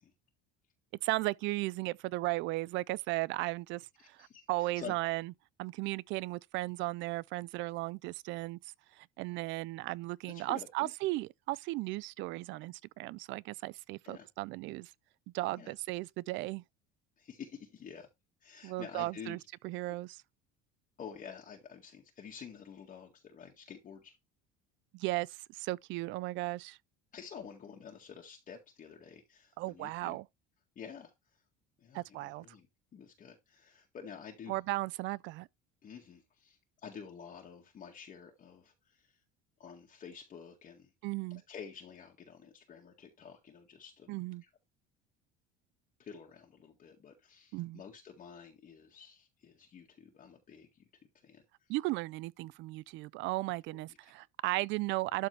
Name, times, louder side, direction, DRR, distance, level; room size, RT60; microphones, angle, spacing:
voice 1, 1.0-5.3 5.6-8.6 9.0-14.9 15.3-16.6 18.6-19.4 19.6-20.2 24.9-26.8 29.6-30.2 31.9-32.5 34.5-35.5 41.0-41.4 44.1-44.4 47.5-47.8 51.7-55.3, right 20 dB, 65° right, 0.4 m, -36 dB
voice 2, 4.0-4.9 10.3-10.9 14.0-14.3 15.6-15.7 17.2-18.1 18.4-19.4 21.0-24.1 27.1-30.2 30.8-31.1 31.8-32.7 32.9-34.6 35.8-39.2 39.6-40.9 41.3-44.1 46.0-50.9 51.2-51.4 53.9-54.0, left 7 dB, 40° left, 1.9 m, -49 dB
12.5 x 4.2 x 3.3 m
supercardioid pair, 110°, 21 cm